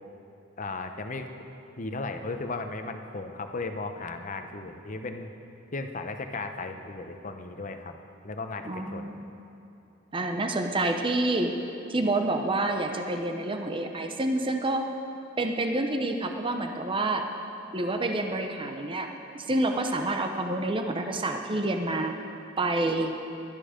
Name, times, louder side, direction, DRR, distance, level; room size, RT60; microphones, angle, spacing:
voice 1, 0.6-1.3 1.8-5.3 5.7-7.9 8.2-9.1, left 3 dB, 45° left, 7 dB, 0.9 m, -35 dB
voice 2, 8.6-9.3 10.1-11.5 11.9-14.9 15.4-17.2 17.7-22.2 22.6-23.1, right 2 dB, 25° right, 4 dB, 0.7 m, -28 dB
16.5 x 12.5 x 5.1 m, 2.8 s
head